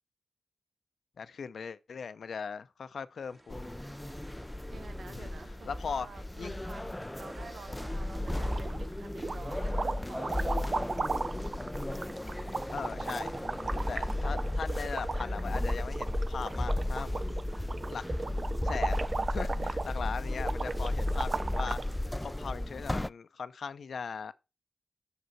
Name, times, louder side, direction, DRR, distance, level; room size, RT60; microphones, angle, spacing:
voice 1, 1.2-3.7 5.1-5.3 5.7-6.1 6.4-6.5 12.7-13.3 13.9-17.2 17.6-18.0 18.6-24.3, left 6 dB, 80° left, 0.6 m, -39 dB
sound 1, 3.2-18.2, right 1 dB, 30° right, 2.0 m, -56 dB
sound 2, 3.5-23.1, left 1 dB, 15° left, 0.3 m, -34 dB
voice 2, 4.7-10.7 13.6-14.4 16.9-17.5 19.5-19.9 21.9-22.6, right 4 dB, 90° right, 0.9 m, -50 dB
sound 3, 8.2-8.9 9.2-21.9, right 3 dB, 55° right, 0.4 m, -37 dB
6.7 x 6.7 x 4.6 m
cardioid pair, 50°, 0 cm